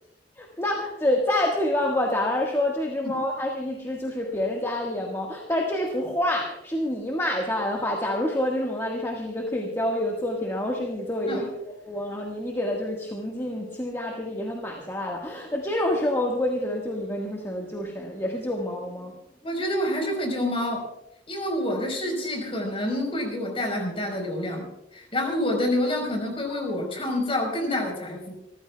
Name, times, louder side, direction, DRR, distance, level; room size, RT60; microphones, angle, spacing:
voice 1, 0.4-11.5 11.9-19.1, left 1 dB, 15° left, -1 dB, 1.6 m, -27 dB
voice 2, 19.4-20.9 21.3-24.7 24.9-28.3, left 1 dB, 30° left, 2 dB, 4.5 m, -27 dB
26.0 x 14.5 x 2.3 m, 0.84 s
head